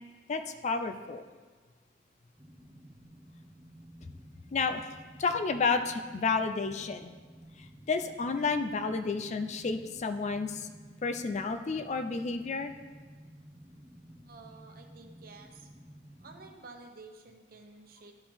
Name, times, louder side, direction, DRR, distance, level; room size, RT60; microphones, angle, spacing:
voice 1, 0.3-1.2 4.5-4.8 5.2-7.1 7.9-10.7 11.0-12.7, left 4 dB, 40° left, 8 dB, 0.4 m, -31 dB
sound 1, 2.4-16.5, right 1 dB, 15° right, 0.7 m, -53 dB
voice 2, 14.3-15.7 16.2-18.1, right 3 dB, 55° right, 3 dB, 0.9 m, -51 dB
12.0 x 5.0 x 3.5 m, 1.4 s
head